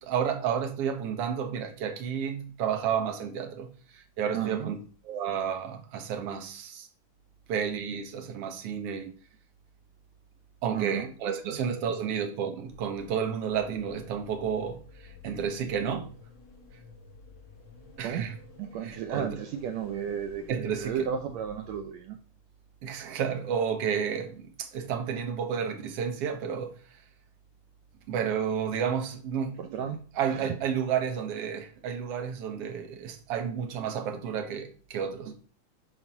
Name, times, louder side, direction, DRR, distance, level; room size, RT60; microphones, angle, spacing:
voice 1, 0.0-4.8 5.1-6.9 7.5-9.2 10.6-16.1 18.0-18.3 18.8-19.3 20.5-21.0 22.8-26.8 28.1-29.6 30.2-35.4, right 7 dB, 60° right, 1.8 m, -31 dB
voice 2, 4.3-4.8 10.7-12.1 18.0-22.2 29.5-30.6 34.3-34.5, right 8 dB, 85° right, 1.5 m, -35 dB
sound 1, 12.6-21.8, left 4 dB, 50° left, 3.5 m, -51 dB
9.1 x 4.8 x 5.7 m
omnidirectional pair, 3.9 m